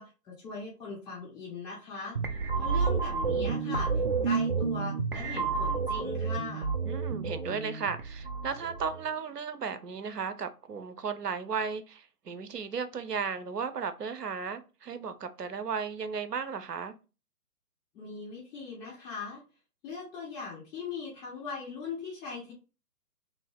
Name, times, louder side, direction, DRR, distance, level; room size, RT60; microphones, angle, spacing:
voice 1, 0.0-2.2 2.5-6.7 17.9-19.4 19.8-22.5, left 4 dB, 10° left, 0.8 m, -40 dB
sound 1, 2.1-9.0, right 5 dB, 40° right, 0.4 m, -30 dB
voice 2, 6.8-17.0, right 6 dB, 85° right, 0.7 m, -35 dB
3.4 x 2.6 x 3.5 m
figure-of-eight pair, 140°, 46 cm